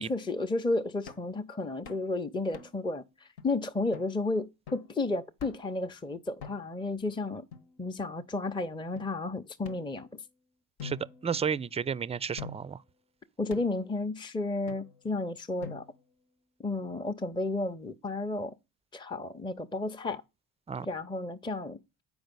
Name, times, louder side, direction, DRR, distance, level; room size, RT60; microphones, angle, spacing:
voice 1, 0.0-7.4 7.8-10.2 13.4-15.8 16.6-18.5 18.9-20.2 20.8-21.8, left 2 dB, 10° left, 0.7 m, -32 dB
sound 1, 1.1-1.3 1.8-2.1 2.5-2.9 3.4-3.5 3.9-4.1 4.7-4.9 5.4-5.8 6.4-6.8 7.5-8.2 9.0-9.1 9.6-10.3 10.8-11.8 12.4-12.8 13.5-13.9 14.7-15.1 15.6-16.1, left 6 dB, 75° left, 1.3 m, -47 dB
voice 2, 10.8-12.8 20.7-20.9, right 7 dB, 15° right, 0.4 m, -32 dB
7.8 x 5.1 x 5.3 m
supercardioid pair, 65°, 39 cm